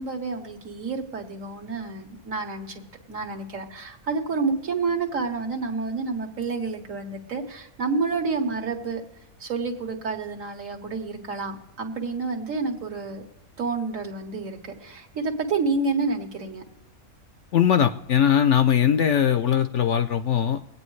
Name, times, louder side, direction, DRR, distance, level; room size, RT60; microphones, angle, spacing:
voice 1, 0.0-9.0 9.4-13.2 13.6-16.6, right 4 dB, 65° right, 3 dB, 1.8 m, -29 dB
voice 2, 17.5-20.6, left 9 dB, 65° left, 10 dB, 0.8 m, -20 dB
24.0 x 9.0 x 3.2 m, 1.1 s
omnidirectional pair, 1.5 m